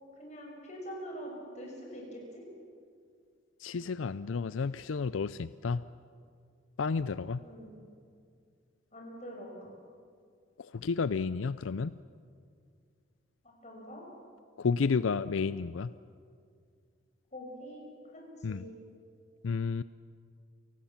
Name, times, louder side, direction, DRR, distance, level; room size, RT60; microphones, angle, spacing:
voice 1, 0.1-2.4 7.4-7.8 8.9-9.7 13.4-14.0 17.3-18.7, equal, 35° left, -1 dB, 6.6 m, -45 dB
voice 2, 3.6-5.8 6.8-7.4 10.6-11.9 14.6-15.9 18.4-18.6 19.4-19.8, left 5 dB, 90° left, 15 dB, 0.5 m, -31 dB
29.0 x 18.5 x 7.3 m, 2.2 s
head